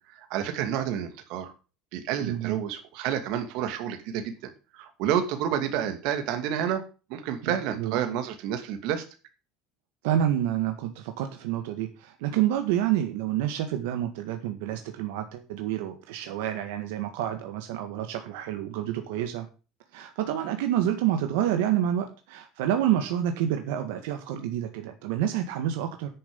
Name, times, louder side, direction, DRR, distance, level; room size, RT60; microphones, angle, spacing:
voice 1, 0.1-1.5 1.9-6.8 7.1-9.0, right 9 dB, 65° right, 7 dB, 2.4 m, -29 dB
voice 2, 2.2-2.6 7.5-8.0 10.0-19.5 19.9-26.1, right 11 dB, 90° right, 6 dB, 1.7 m, -28 dB
9.9 x 7.0 x 7.0 m, 0.34 s
cardioid pair, 160°, 0 cm